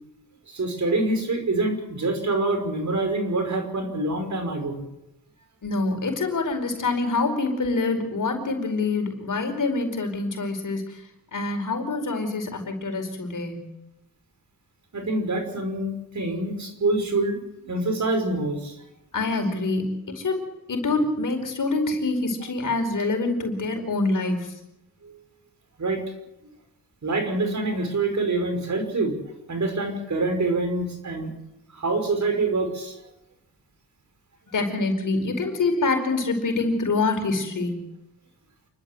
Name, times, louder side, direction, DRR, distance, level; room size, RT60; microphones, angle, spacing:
voice 1, 0.5-4.8 14.9-17.4 17.7-18.7 25.0-25.1 25.8-26.0 27.0-29.2 29.5-31.3 31.7-33.0, right 2 dB, 55° right, 5 dB, 5.7 m, -26 dB
voice 2, 5.6-11.0 11.3-13.7 19.1-24.5 34.5-37.8, left 3 dB, 60° left, 4 dB, 4.9 m, -26 dB
28.5 x 12.5 x 7.9 m, 0.91 s
cardioid pair, 60°, 35 cm